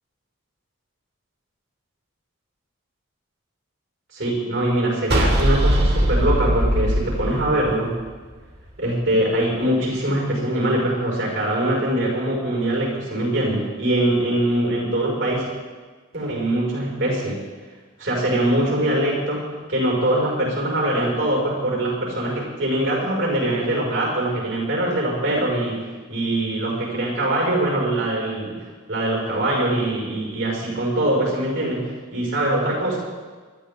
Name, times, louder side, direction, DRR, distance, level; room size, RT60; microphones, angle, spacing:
voice 1, 4.1-8.0 8.8-15.5 16.1-17.4 18.0-28.6 28.9-33.0, right 1 dB, 70° right, -2 dB, 5.7 m, -23 dB
sound 1, 5.1-8.3, equal, 55° right, 2.6 m, -20 dB
20.5 x 13.0 x 3.8 m, 1.4 s
head